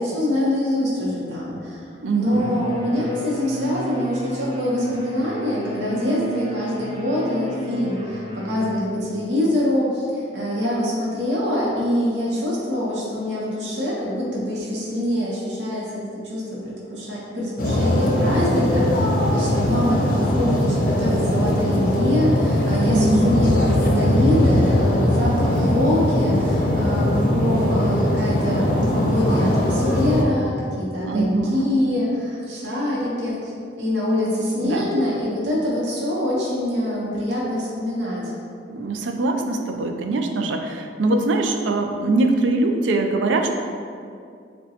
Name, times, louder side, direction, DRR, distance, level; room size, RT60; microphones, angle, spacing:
voice 1, 0.0-38.3, left 1 dB, 70° right, -6 dB, 0.8 m, -24 dB
voice 2, 2.0-2.5 22.9-23.6 31.0-31.8 34.6-34.9 38.7-43.5, right 2 dB, 85° right, 4 dB, 0.4 m, -22 dB
sound 1, 2.3-8.8, equal, 25° right, 0.4 m, -32 dB
sound 2, 17.6-30.2, left 1 dB, 50° left, 0.5 m, -20 dB
6.4 x 2.2 x 2.8 m, 2.3 s
head